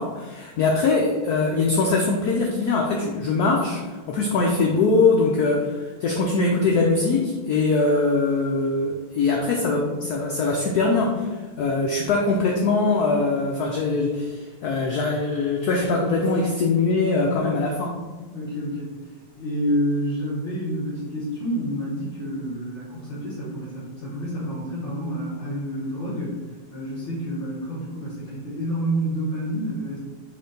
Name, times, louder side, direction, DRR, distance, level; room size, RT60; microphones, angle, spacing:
voice 1, 0.0-11.3 11.6-17.9, left 3 dB, 85° left, 0 dB, 0.8 m, -22 dB
voice 2, 18.3-18.9 19.3-26.4 26.7-30.0, equal, 40° left, -10 dB, 1.4 m, -28 dB
4.4 x 3.1 x 3.8 m, 1.3 s
omnidirectional pair, 2.3 m